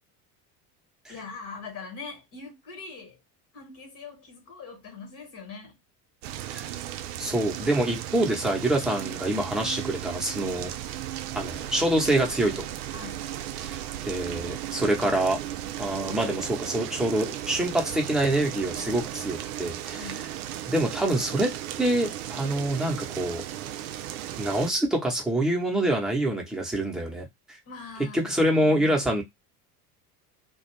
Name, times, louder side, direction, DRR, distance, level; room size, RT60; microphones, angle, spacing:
voice 1, 1.1-3.2 3.5-5.8 12.9-13.3 19.9-20.4 27.7-29.0, left 4 dB, 40° left, 1.3 m, -42 dB
sound 1, 6.2-24.7, right 12 dB, 65° right, 0.5 m, -35 dB
voice 2, 7.2-10.7 11.3-12.6 13.6-15.4 15.8-20.2 20.7-21.5 21.8-23.4 24.4-27.3 28.1-29.2, right 1 dB, ahead, 0.8 m, -26 dB
2.3 x 2.2 x 3.1 m
figure-of-eight pair, 70°, 49 cm